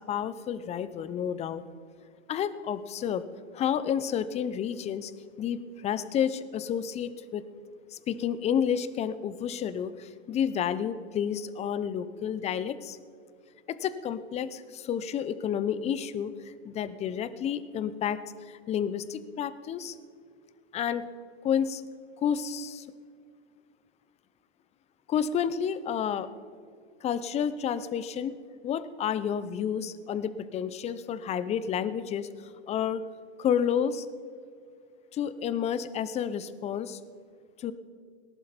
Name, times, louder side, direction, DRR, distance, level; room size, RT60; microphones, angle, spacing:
voice 1, 0.1-1.6 2.3-3.2 3.5-5.1 5.4-7.4 7.9-13.0 13.7-16.3 16.6-18.2 18.5-20.0 20.7-21.1 21.4-21.8 22.2-22.9 25.1-26.3 27.0-32.3 32.7-33.0 33.4-34.1 35.1-37.0 37.6-37.7, left 8 dB, 20° left, 14 dB, 0.6 m, -30 dB
18.5 x 11.0 x 5.2 m, 2.1 s
hypercardioid pair, 115°, 34 cm